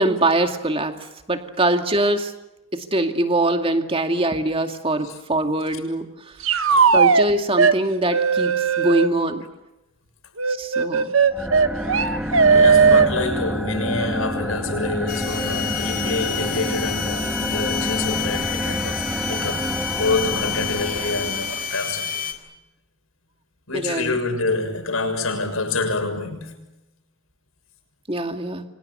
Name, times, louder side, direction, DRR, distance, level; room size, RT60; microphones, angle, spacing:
voice 1, 0.0-2.3 2.7-6.3 6.9-9.5 10.5-11.2 23.7-24.2 28.1-28.6, right 1 dB, 25° right, 2.3 m, -23 dB
sound 1, 6.4-7.3 7.6-7.8 8.1-9.1 10.4-13.1, right 5 dB, 75° right, 1.2 m, -17 dB
voice 2, 6.6-7.0 12.5-22.3 23.7-26.5, left 3 dB, 85° left, 6.6 m, -27 dB
sound 2, 11.3-21.8, equal, 5° right, 1.6 m, -28 dB
sound 3, 15.1-22.3, left 9 dB, 45° left, 3.8 m, -29 dB
29.0 x 25.0 x 6.8 m
head